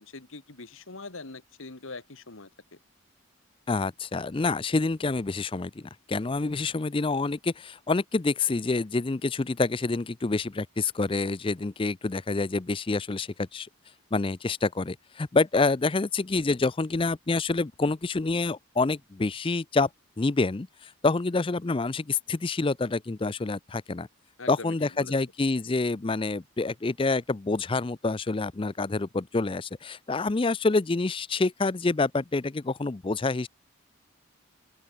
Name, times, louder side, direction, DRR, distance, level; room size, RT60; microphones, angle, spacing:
voice 1, 0.0-2.8 24.4-25.1, left 3 dB, 70° left, 1.7 m, -43 dB
voice 2, 3.7-13.7 14.1-19.9 20.2-24.1 24.5-33.5, left 3 dB, 25° left, 0.4 m, -27 dB
open air
head